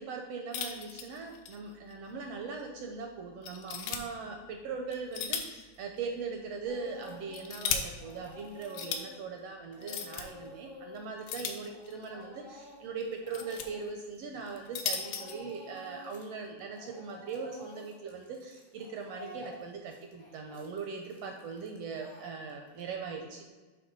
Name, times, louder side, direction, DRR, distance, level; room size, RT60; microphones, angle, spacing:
voice 1, 0.0-23.4, right 4 dB, 80° right, 3 dB, 1.4 m, -40 dB
sound 1, 0.5-1.6 1.9-2.0 2.6-2.7 3.4-4.0 4.9-5.6 5.9-6.0 7.0-7.8 8.6-9.0 9.8-10.2 11.3-12.1 13.0-13.7 14.5-15.4, left 7 dB, 75° left, 1.8 m, -35 dB
Speech / Crying sobbing, 6.7-7.7 8.0-14.6 14.9-16.3 16.6-22.8, left 2 dB, 30° left, 0.5 m, -51 dB
8.4 x 3.3 x 5.2 m, 1.3 s
omnidirectional pair, 3.5 m